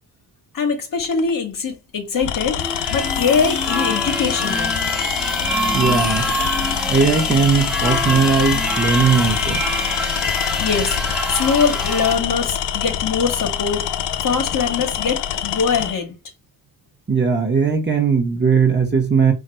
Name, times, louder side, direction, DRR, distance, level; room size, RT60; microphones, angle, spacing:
voice 1, 0.5-2.6 2.9-4.8 10.6-13.9 14.2-16.2, left 5 dB, 50° left, 0.9 m, -22 dB
Tools, 1.0-1.3 2.1-16.0, left 10 dB, 90° left, 0.5 m, -25 dB
sound 1, 2.6-12.2, equal, ahead, 0.6 m, -25 dB
voice 2, 5.7-6.3 6.9-9.6 17.1-19.3, right 5 dB, 25° right, 0.9 m, -18 dB
3.5 x 2.4 x 4.2 m
wide cardioid pair, 145°, 41 cm